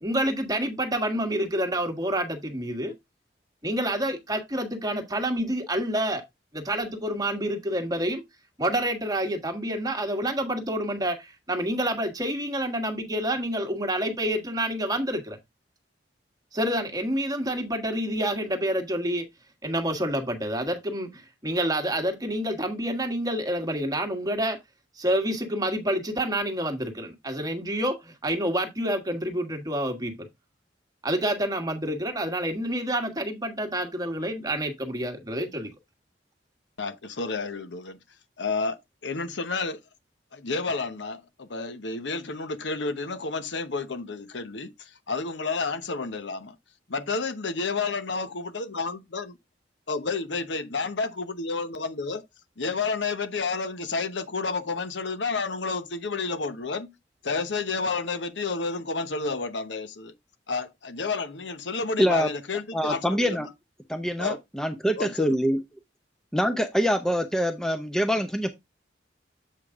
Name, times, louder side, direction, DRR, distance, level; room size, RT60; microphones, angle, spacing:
voice 1, 0.0-2.9 3.6-6.2 6.5-8.2 8.6-15.4 16.5-19.2 19.6-24.6 25.0-30.3 31.0-35.7, right 1 dB, 20° right, 1.5 m, -28 dB
voice 2, 36.8-38.0 38.4-38.8 39.0-39.8 40.3-44.7 45.1-46.5 46.9-49.2 49.9-52.2 52.6-56.9 57.2-60.1 60.5-63.4 64.2-64.4 65.0-65.3, left 4 dB, 85° left, 1.0 m, -30 dB
voice 3, 62.0-62.3 62.7-63.5 63.9-65.6 66.3-68.5, equal, 5° left, 0.7 m, -25 dB
7.8 x 5.1 x 3.6 m
head